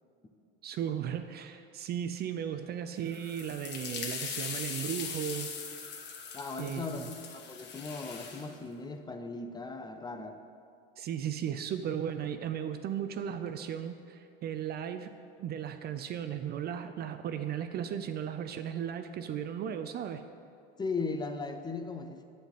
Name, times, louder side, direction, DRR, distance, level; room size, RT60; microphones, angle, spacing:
voice 1, 0.6-5.5 6.6-7.1 11.0-15.1 15.4-20.2, right 9 dB, 35° right, 9 dB, 0.5 m, -36 dB
sound 1, 3.1-8.5, left 6 dB, 35° left, 1.5 m, -40 dB
voice 2, 6.3-10.4 20.8-22.2, left 4 dB, 15° left, 6 dB, 0.6 m, -38 dB
11.5 x 4.2 x 8.1 m, 2.4 s
supercardioid pair, 115°, 29 cm